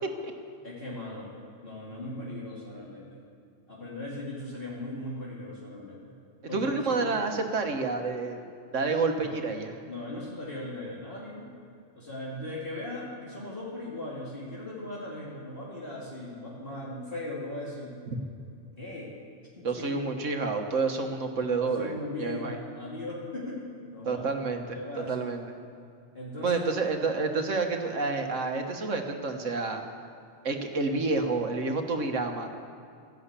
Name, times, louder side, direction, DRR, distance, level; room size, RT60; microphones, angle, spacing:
voice 1, 0.0-0.3 6.5-8.4 8.7-9.7 18.1-18.2 19.6-22.6 24.0-24.8 25.1-25.5 26.4-29.8 30.4-32.5, right 3 dB, 75° right, 4 dB, 1.7 m, -29 dB
voice 2, 0.6-1.4 1.6-3.2 3.7-6.2 6.5-7.1 9.2-9.4 9.9-11.5 11.9-17.9 18.8-19.1 19.6-20.0 21.6-24.2 24.7-25.3 26.1-26.7, left 1 dB, 45° left, -6 dB, 2.9 m, -38 dB
13.5 x 11.5 x 8.3 m, 2.4 s
omnidirectional pair, 1.3 m